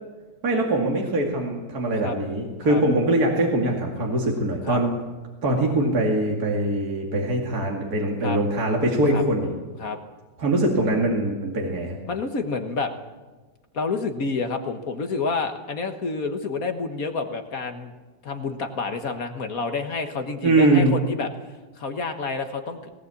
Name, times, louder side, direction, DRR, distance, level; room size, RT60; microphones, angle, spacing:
voice 1, 0.4-4.9 5.4-9.6 10.4-12.0 20.4-20.9, right 1 dB, 60° right, 0 dB, 2.8 m, -22 dB
voice 2, 12.1-12.9 13.7-17.9 18.2-21.3 21.8-22.9, left 4 dB, 55° left, 6 dB, 1.7 m, -29 dB
18.5 x 18.5 x 8.4 m, 1.3 s
omnidirectional pair, 1.9 m